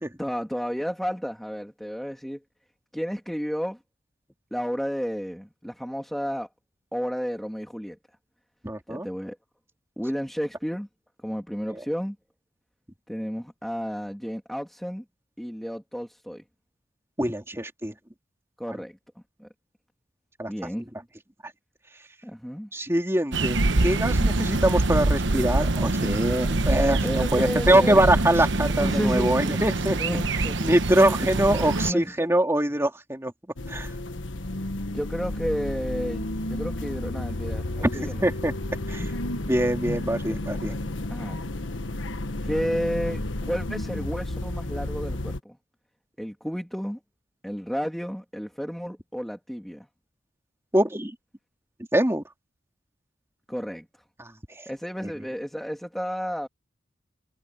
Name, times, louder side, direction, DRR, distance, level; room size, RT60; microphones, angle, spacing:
voice 1, 0.2-2.4 2.9-3.8 4.5-6.5 6.9-8.0 8.9-9.4 10.0-10.9 11.2-12.2 13.1-15.0 15.4-16.4 18.6-19.0 19.4-19.5 20.5-20.9 22.2-22.7 27.0-28.1 28.8-29.4 30.0-30.6 31.8-32.1 34.9-38.3 38.9-39.1 41.1-41.4 42.4-45.6 46.2-47.0 47.4-49.9 53.5-53.8 54.7-56.5, equal, ahead, 2.9 m, -31 dB
voice 2, 8.6-9.1 17.2-17.9 20.4-20.5 22.7-30.2 30.6-33.3 33.7-33.9 37.9-38.5 38.9-39.0 39.5-40.8 50.7-51.1 51.9-52.2 54.2-54.3 55.0-55.1, right 1 dB, 15° right, 3.1 m, -23 dB
sound 1, 23.3-31.9, right 2 dB, 70° right, 1.1 m, -25 dB
sound 2, 33.6-45.4, left 1 dB, 80° left, 1.4 m, -32 dB
head